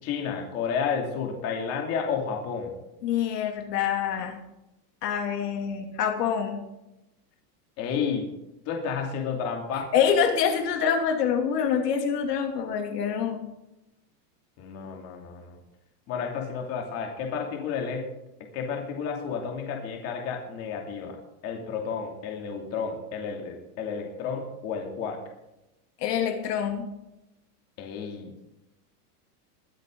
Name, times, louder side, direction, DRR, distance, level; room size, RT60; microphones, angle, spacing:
voice 1, 0.0-2.7 7.8-8.3 8.6-9.9 14.6-15.6 16.1-18.1 18.5-21.2 21.4-25.2 27.8-28.3, left 6 dB, 30° left, 1 dB, 2.7 m, -31 dB
voice 2, 3.0-4.4 5.0-6.6 9.9-13.4 26.0-26.9, left 7 dB, 90° left, 4 dB, 2.8 m, -26 dB
22.5 x 8.4 x 3.8 m, 0.92 s
supercardioid pair, 165°, 47 cm